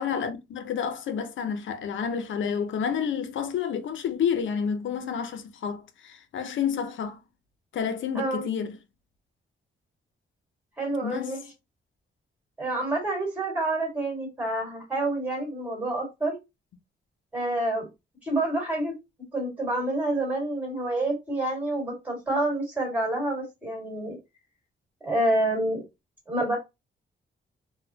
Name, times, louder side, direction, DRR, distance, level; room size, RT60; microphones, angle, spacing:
voice 1, 0.0-7.2 7.7-8.7 11.0-11.3, left 7 dB, 70° left, 0.5 m, -29 dB
voice 2, 10.8-11.4 12.6-16.4 17.3-17.9 18.2-18.9 19.3-24.2 25.0-25.8 26.3-26.6, right 1 dB, 10° right, 1.9 m, -28 dB
3.9 x 2.1 x 2.7 m
wide cardioid pair, 160°, 21 cm